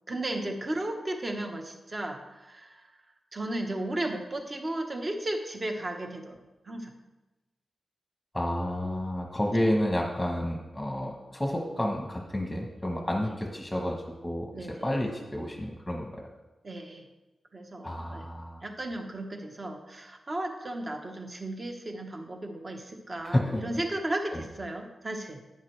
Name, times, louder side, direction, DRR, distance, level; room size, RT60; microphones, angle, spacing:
voice 1, 0.1-2.9 3.3-6.4 6.6-6.9 14.5-14.7 16.6-17.0 17.5-18.3 18.6-25.4, right 1 dB, 30° right, 4 dB, 1.0 m, -35 dB
voice 2, 8.3-16.3 17.8-18.6 23.2-23.6 24.3-24.4, left 1 dB, 5° left, 1 dB, 1.1 m, -30 dB
10.5 x 9.3 x 3.3 m, 1.1 s
wide cardioid pair, 135°, 0 cm